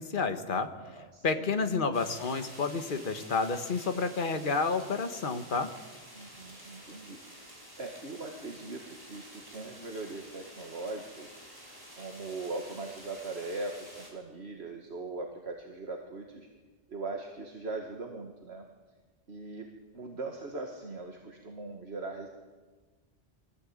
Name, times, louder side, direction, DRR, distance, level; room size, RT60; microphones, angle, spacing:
voice 1, 0.0-0.7 1.2-5.7, left 4 dB, 50° left, 8 dB, 1.6 m, -30 dB
voice 2, 0.8-1.5 6.1-11.4 11.9-16.5 16.9-18.6 19.3-19.7 19.9-22.3, right 3 dB, 65° right, 2 dB, 2.1 m, -40 dB
sound 1, 1.9-14.1, equal, 20° right, 5.8 m, -50 dB
24.0 x 16.5 x 8.8 m, 1.3 s
omnidirectional pair, 1.2 m